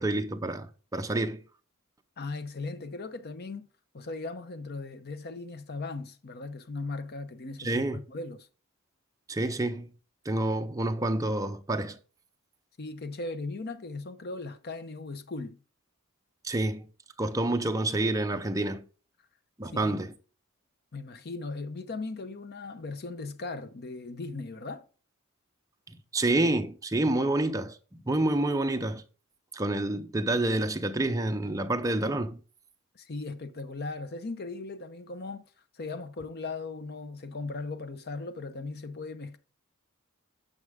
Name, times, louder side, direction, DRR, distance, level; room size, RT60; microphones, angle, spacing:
voice 1, 0.0-1.4 7.6-8.0 9.3-9.9 10.3-12.0 16.4-16.9 17.2-18.9 19.6-20.1 26.1-27.8 28.1-29.0 29.5-32.4, right 2 dB, 15° right, 0.6 m, -28 dB
voice 2, 2.2-3.7 3.9-8.5 12.8-15.6 19.7-20.0 20.9-24.8 32.9-35.5 35.7-39.4, left 3 dB, 50° left, 0.7 m, -38 dB
9.6 x 6.3 x 3.5 m
head